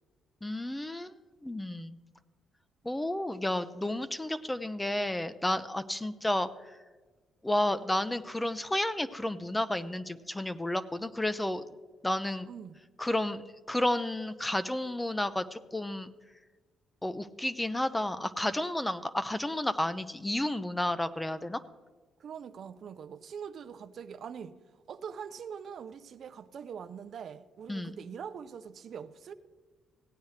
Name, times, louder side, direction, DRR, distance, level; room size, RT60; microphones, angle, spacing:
voice 1, 0.4-1.1 1.4-2.0 2.8-6.8 7.4-11.6 12.0-12.5 13.0-16.1 17.0-21.6 27.7-28.0, left 1 dB, 10° left, 0.5 m, -31 dB
voice 2, 12.5-12.8 22.2-24.5 24.9-29.3, right 7 dB, 60° right, 0.5 m, -43 dB
16.5 x 9.3 x 3.2 m
cardioid pair, 90°, 0 cm